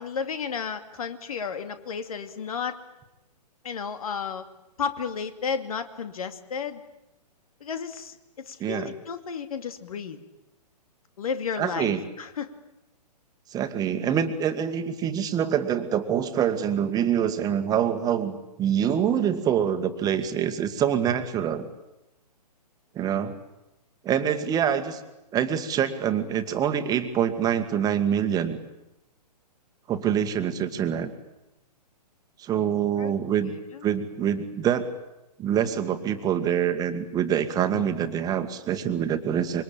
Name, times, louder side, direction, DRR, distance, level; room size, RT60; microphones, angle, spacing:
voice 1, 0.0-2.8 3.6-4.4 4.8-6.8 7.6-10.2 11.2-12.5 24.7-24.8 33.0-33.1 33.4-33.9, left 6 dB, 60° left, 9 dB, 2.5 m, -33 dB
voice 2, 8.6-8.9 11.6-12.0 13.5-21.7 23.0-23.3 24.0-25.0 25.3-28.6 29.9-31.1 32.4-33.5 33.8-34.9 35.4-39.6, right 9 dB, 20° right, 8 dB, 1.9 m, -25 dB
26.5 x 23.5 x 8.9 m, 0.91 s
figure-of-eight pair, 120°, 21 cm